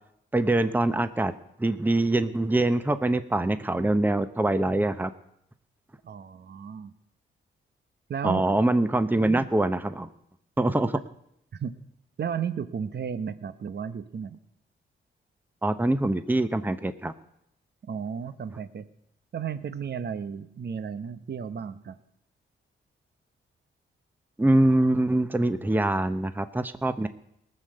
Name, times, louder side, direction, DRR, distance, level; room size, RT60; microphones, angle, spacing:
voice 1, 0.3-1.3 1.6-5.1 8.2-10.1 10.6-11.0 15.6-17.1 24.4-27.1, right 2 dB, 10° right, 11 dB, 0.8 m, -24 dB
voice 2, 6.0-6.9 8.1-8.5 11.6-11.7 12.2-14.4 17.8-18.9 19.3-22.0, right 7 dB, 55° right, 13 dB, 0.9 m, -33 dB
18.0 x 6.7 x 7.8 m, 0.77 s
cardioid pair, 65°, 21 cm